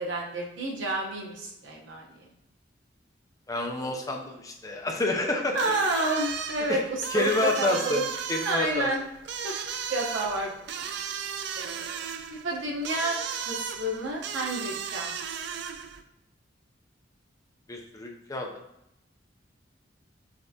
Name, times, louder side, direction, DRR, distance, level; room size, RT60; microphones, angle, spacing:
voice 1, 0.0-2.2 5.5-8.0 8.4-9.0 9.4-9.5 9.9-10.5 10.8-10.9 11.5-12.0 12.4-13.2 13.5-15.4, right 2 dB, 85° right, -1 dB, 0.9 m, -30 dB
voice 2, 3.5-5.6 6.7-6.8 7.1-8.0 8.3-8.9 17.7-18.5, left 2 dB, 20° left, 1 dB, 0.5 m, -28 dB
sound 1, 5.5-16.0, right 7 dB, 65° right, 0.4 m, -35 dB
5.2 x 3.3 x 2.7 m, 0.83 s
head